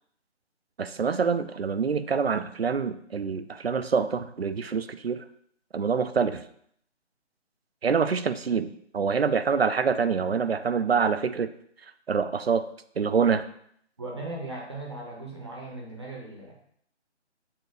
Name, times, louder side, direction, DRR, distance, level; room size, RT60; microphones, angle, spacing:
voice 1, 0.8-5.2 5.7-6.4 7.8-11.5 12.1-12.6 13.0-13.4, right 6 dB, 60° right, 11 dB, 0.5 m, -26 dB
voice 2, 14.0-16.6, right 2 dB, 25° right, -2 dB, 0.8 m, -38 dB
7.0 x 3.0 x 5.0 m, 0.67 s
figure-of-eight pair, 155°, 36 cm